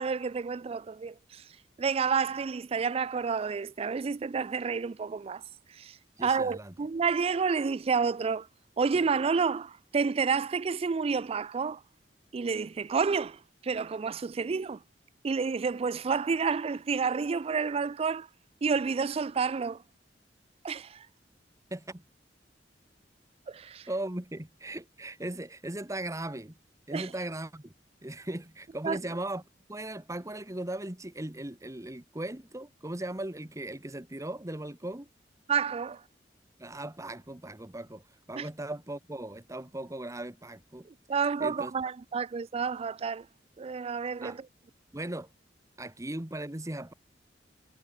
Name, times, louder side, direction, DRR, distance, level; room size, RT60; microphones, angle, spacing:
voice 1, 0.0-1.5 1.8-5.4 5.7-8.5 8.8-11.8 12.3-14.8 15.2-18.3 18.6-19.8 20.6-21.1 23.5-23.9 26.9-27.1 28.8-29.0 35.5-36.0 38.4-38.5 40.9-43.3 43.6-44.5, right 5 dB, 35° right, 0.4 m, -30 dB
voice 2, 6.2-6.7 21.7-22.0 23.9-26.5 26.9-27.7 28.0-29.4 29.7-35.1 36.6-38.0 38.3-40.9 41.2-41.7 44.2-44.4 44.9-45.3 45.8-46.9, right 1 dB, 20° right, 1.5 m, -38 dB
head